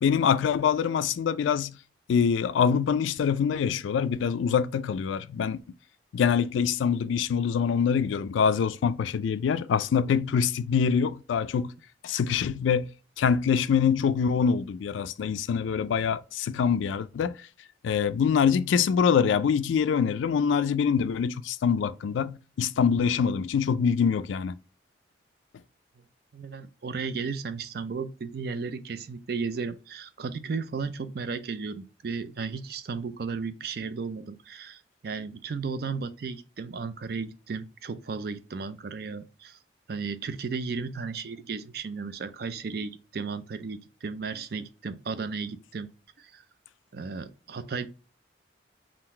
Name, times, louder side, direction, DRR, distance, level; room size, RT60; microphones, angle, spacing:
voice 1, 0.0-1.7 2.1-5.6 6.1-11.7 12.0-12.9 13.2-17.3 17.8-24.5, left 7 dB, 85° left, 0.3 m, -25 dB
voice 2, 26.3-39.6 39.9-45.9 46.2-46.4 46.9-47.9, right 5 dB, 55° right, 0.4 m, -34 dB
3.8 x 2.5 x 4.2 m
head